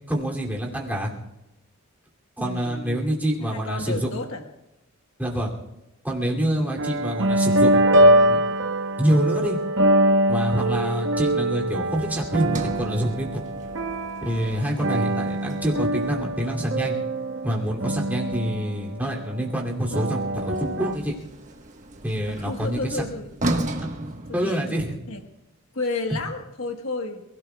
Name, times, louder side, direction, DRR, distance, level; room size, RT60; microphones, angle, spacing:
voice 1, 0.1-1.1 2.4-4.1 5.2-5.5 6.0-7.7 8.0-8.4 9.0-9.6 10.3-13.4 14.2-17.0 17.4-21.2 22.0-23.0 24.3-24.9, equal, 10° right, -3 dB, 2.7 m, -26 dB
voice 2, 2.4-3.0 3.4-4.5 6.4-6.8 22.3-23.3 24.3-25.2 25.7-27.2, left 3 dB, 70° left, 4 dB, 1.3 m, -32 dB
sound 1, 6.6-19.4 19.9-20.9, right 1 dB, 55° right, 0.9 m, -23 dB
Sliding door, 12.4-16.7 20.1-25.1, right 1 dB, 35° right, 1.3 m, -35 dB
28.0 x 17.0 x 2.3 m, 0.96 s
head